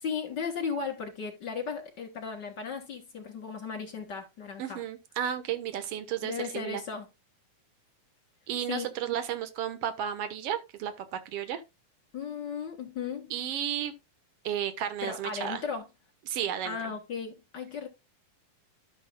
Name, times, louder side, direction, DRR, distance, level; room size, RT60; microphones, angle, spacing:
voice 1, 0.0-4.8 6.2-7.1 8.7-8.9 12.1-13.3 15.0-15.9 16.6-17.9, left 6 dB, 45° left, 1.6 m, -36 dB
voice 2, 4.6-6.8 8.5-11.6 13.3-13.9 14.4-15.6 16.3-16.9, right 10 dB, 65° right, 1.5 m, -33 dB
13.0 x 7.0 x 2.2 m
omnidirectional pair, 4.2 m